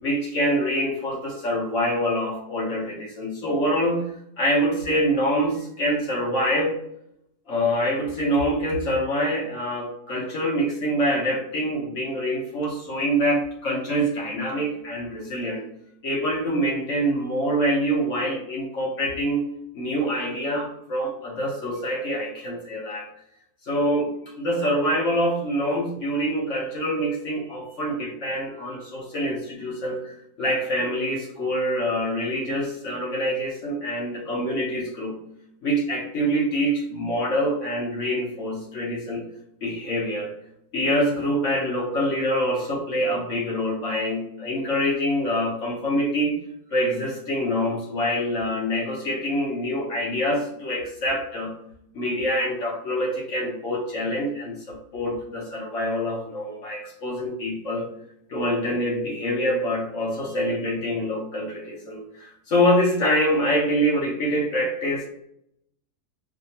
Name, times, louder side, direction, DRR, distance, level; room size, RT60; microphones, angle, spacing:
voice 1, 0.0-6.8 7.5-15.7 16.0-19.4 19.7-23.1 23.6-35.1 35.6-39.3 39.6-40.3 40.7-46.4 46.7-51.5 51.9-57.9 58.3-65.1, equal, 55° left, -2 dB, 1.3 m, -25 dB
4.9 x 2.7 x 2.9 m, 0.75 s
omnidirectional pair, 1.7 m